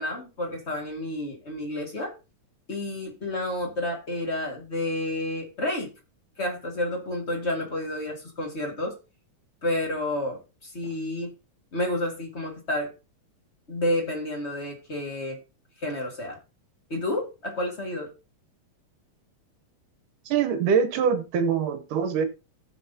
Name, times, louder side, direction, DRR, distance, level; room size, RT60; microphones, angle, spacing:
voice 1, 0.0-2.1 2.7-5.9 6.4-8.9 9.6-11.3 11.7-12.9 13.7-15.4 15.8-16.4 16.9-18.1, left 1 dB, 30° left, 1.3 m, -30 dB
voice 2, 20.3-22.3, right 6 dB, 75° right, 2.3 m, -24 dB
18.0 x 6.1 x 2.7 m
omnidirectional pair, 3.9 m